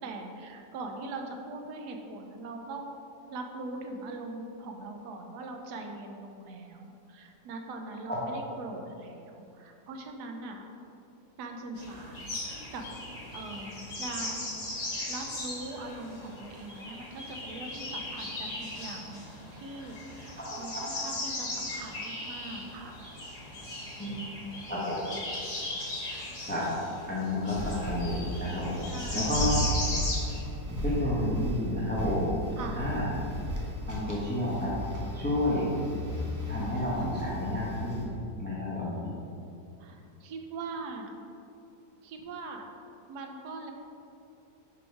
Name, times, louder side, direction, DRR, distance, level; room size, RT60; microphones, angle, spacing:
voice 1, 0.0-3.0 3.3-10.6 11.4-12.9 13.3-14.5 15.1-19.3 19.5-23.0 24.0-24.1 28.9-29.3 32.6-32.9 39.8-41.1 42.0-42.7 43.1-43.7, right 2 dB, 80° right, 3 dB, 1.2 m, -41 dB
sound 1, 11.8-30.4, left 2 dB, 80° left, 2.0 m, -38 dB
voice 2, 27.1-28.8 29.1-29.6 30.8-32.3 32.8-33.0 33.9-34.7 35.1-35.7 36.5-38.1 38.4-39.1, left 1 dB, 5° left, -7 dB, 1.0 m, -30 dB
sound 2, 27.5-38.0, equal, 15° right, 0.6 m, -35 dB
5.2 x 5.1 x 4.6 m, 2.7 s
omnidirectional pair, 1.7 m